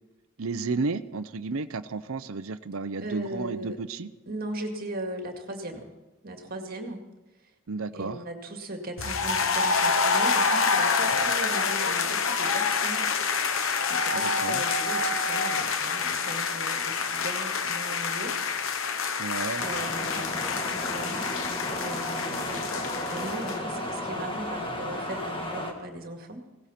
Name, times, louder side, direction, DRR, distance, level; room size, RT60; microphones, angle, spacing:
voice 1, 0.4-4.1 7.7-8.2 14.1-14.6 19.2-19.6, right 4 dB, 70° right, 12 dB, 0.7 m, -32 dB
voice 2, 3.0-3.8 4.3-5.9 6.2-7.0 7.9-13.1 13.9-18.4 19.6-21.4 21.6-26.5, right 1 dB, 45° right, 3 dB, 2.1 m, -38 dB
sound 1, 9.0-23.6, left 5 dB, 65° left, 1.0 m, -27 dB
sound 2, 19.6-25.7, left 1 dB, 25° left, 1.6 m, -33 dB
17.5 x 16.0 x 4.3 m, 1.1 s
head